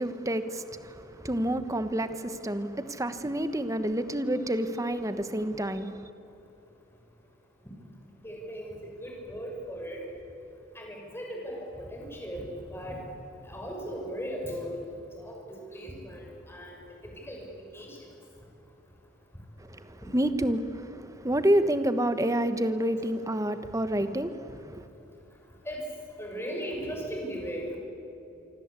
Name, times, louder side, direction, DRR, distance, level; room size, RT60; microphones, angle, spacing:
voice 1, 0.0-6.1 19.6-24.9, right 1 dB, 15° right, 1.1 m, -29 dB
voice 2, 8.2-10.0 10.7-13.0 13.4-17.5 17.7-18.0 25.6-25.8 26.2-27.7, equal, 10° left, 6.3 m, -38 dB
26.5 x 25.0 x 8.3 m
head